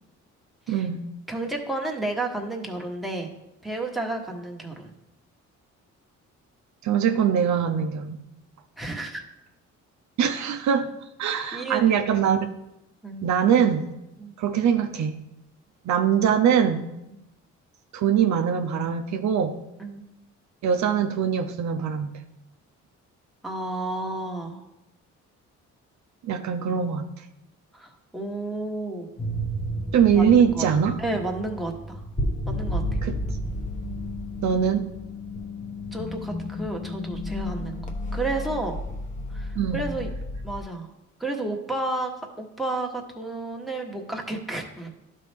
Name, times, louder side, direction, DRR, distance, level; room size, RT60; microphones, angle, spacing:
voice 1, 0.7-1.1 6.8-8.2 10.2-10.9 11.2-12.5 13.2-13.9 14.4-15.2 15.8-16.9 17.9-19.6 20.6-22.1 26.2-27.1 29.9-31.0 33.0-33.1 34.4-34.9 39.6-39.9, right 8 dB, 70° right, 5 dB, 0.7 m, -22 dB
voice 2, 1.3-3.3 3.6-4.9 8.8-9.2 11.5-12.1 13.0-13.2 14.2-14.3 17.1-17.2 19.8-20.0 23.4-24.6 27.7-29.1 30.1-30.7 31.0-32.0 32.5-33.0 35.9-38.8 39.3-40.1 40.4-40.9 41.2-44.9, right 2 dB, ahead, 0 dB, 1.2 m, -31 dB
sound 1, 29.2-40.6, left 1 dB, 25° left, 1.0 m, -32 dB
11.5 x 4.3 x 3.4 m, 0.87 s
cardioid pair, 90°, 30 cm